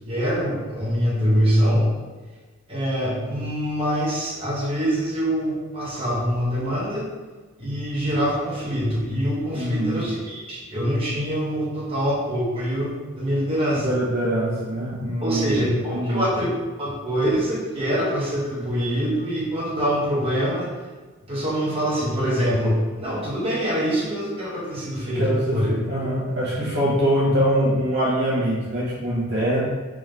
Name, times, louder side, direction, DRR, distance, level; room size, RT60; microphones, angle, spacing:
voice 1, 0.1-1.9 2.7-7.1 7.6-13.9 15.2-16.5 16.8-20.7 21.3-25.7, equal, 25° right, -7 dB, 1.0 m, -24 dB
voice 2, 9.5-10.1 13.7-16.3 25.1-29.6, equal, 50° right, -6 dB, 0.9 m, -23 dB
3.6 x 3.1 x 3.2 m, 1.4 s
head